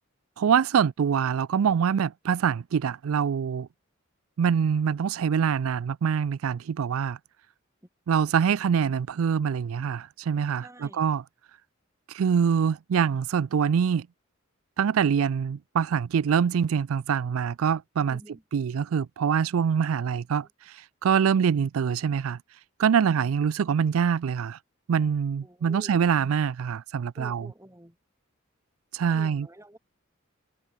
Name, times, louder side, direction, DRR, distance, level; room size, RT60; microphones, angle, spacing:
voice 1, 0.4-3.7 4.4-7.2 8.1-11.2 12.1-14.1 14.8-18.2 18.5-22.4 22.8-24.6 24.9-27.5 28.9-29.5, right 7 dB, 80° right, 0.4 m, -24 dB
voice 2, 10.6-11.1 18.1-18.4 23.0-23.1 25.4-26.0 27.2-28.0 29.1-29.8, right 1 dB, 15° right, 6.6 m, -48 dB
head